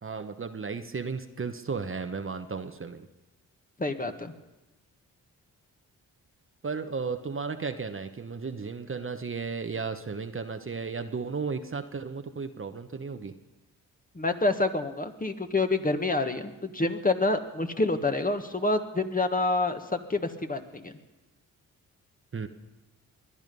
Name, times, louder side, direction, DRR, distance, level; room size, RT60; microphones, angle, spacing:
voice 1, 0.0-3.1 6.6-13.4 22.3-22.5, right 5 dB, 35° right, 8 dB, 1.0 m, -34 dB
voice 2, 3.8-4.3 14.1-19.8 20.1-20.9, left 2 dB, 20° left, 6 dB, 1.5 m, -27 dB
21.0 x 10.5 x 5.4 m, 1.0 s
supercardioid pair, 50°, 37 cm